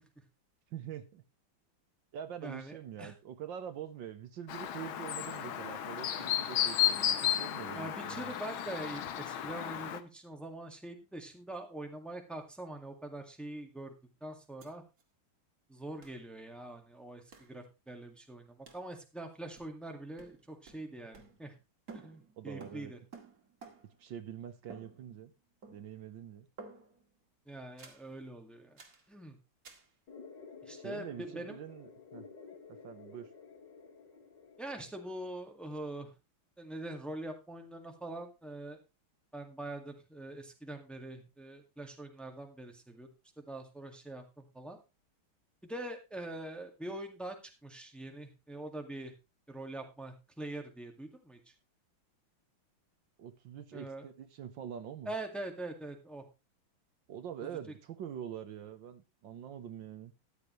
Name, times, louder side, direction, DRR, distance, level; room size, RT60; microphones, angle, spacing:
voice 1, 0.7-1.2 2.1-8.3 22.4-22.9 24.0-25.3 25.7-26.5 30.7-32.3 32.7-33.3 53.2-55.1 57.1-60.1, right 9 dB, 70° right, 10 dB, 1.6 m, -45 dB
voice 2, 2.4-3.1 7.7-13.9 14.2-14.8 15.7-21.5 21.9-23.0 27.5-28.7 29.1-29.4 30.7-31.6 34.6-36.1 36.6-38.8 39.3-43.1 43.4-44.8 45.6-47.4 47.6-49.1 49.5-51.4 53.7-54.0 55.1-56.2, right 1 dB, ahead, 4 dB, 1.7 m, -43 dB
Chirp tweet, 4.5-10.0, left 11 dB, 80° left, 1.8 m, -33 dB
sound 1, 14.6-14.7 15.0-15.1 16.0-16.2 17.3-17.6 18.7-18.9 19.6-19.9 20.2-21.6 21.9-24.0 24.7-25.3 25.6-26.1 26.6-27.1 27.8-28.1 28.8-29.1 29.6-29.9, right 4 dB, 45° right, 2.4 m, -53 dB
sound 2, 30.1-35.1, left 5 dB, 60° left, 2.6 m, -52 dB
13.5 x 10.5 x 3.1 m, 0.27 s
omnidirectional pair, 2.2 m